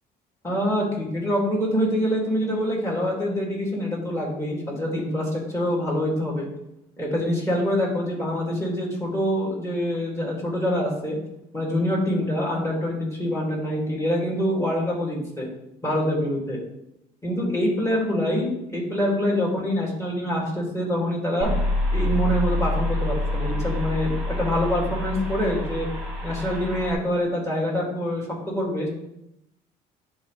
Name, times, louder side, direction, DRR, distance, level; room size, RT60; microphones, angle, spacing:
voice 1, 0.4-6.5 7.0-11.2 11.5-15.5 15.8-16.6 17.2-21.5 21.9-25.9 26.2-28.3 28.5-28.9, equal, 15° left, -3 dB, 2.6 m, -25 dB
sound 1, 21.4-26.9, left 1 dB, ahead, 2.1 m, -27 dB
10.5 x 3.8 x 3.4 m, 0.83 s
cardioid pair, 110°, 17 cm